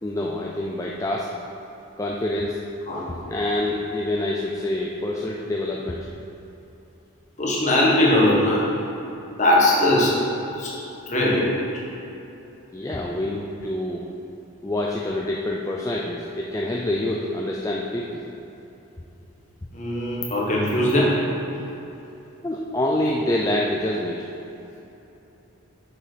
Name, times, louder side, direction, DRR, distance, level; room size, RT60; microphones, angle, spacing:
voice 1, 0.0-1.3 2.0-2.6 3.1-6.0 12.7-14.0 14.6-18.2 22.4-24.2, left 1 dB, 15° left, -2 dB, 0.4 m, -26 dB
voice 2, 7.4-8.6 9.4-10.2 10.6-10.7 11.1-11.5 19.7-21.2, left 1 dB, 35° left, -4 dB, 1.5 m, -20 dB
7.2 x 6.6 x 5.1 m, 3.0 s
head